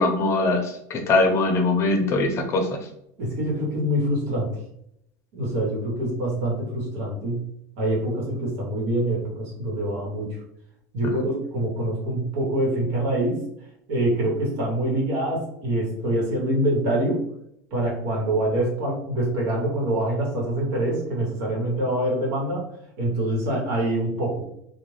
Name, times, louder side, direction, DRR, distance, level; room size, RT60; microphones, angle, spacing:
voice 1, 0.0-2.7, left 2 dB, 35° left, 3 dB, 0.6 m, -21 dB
voice 2, 3.2-4.5 5.3-7.4 7.8-10.4 10.9-13.4 13.9-17.2 17.7-22.7 23.0-24.5, right 1 dB, 70° right, -2 dB, 1.2 m, -25 dB
2.4 x 2.2 x 3.2 m, 0.76 s
supercardioid pair, 135°, 8 cm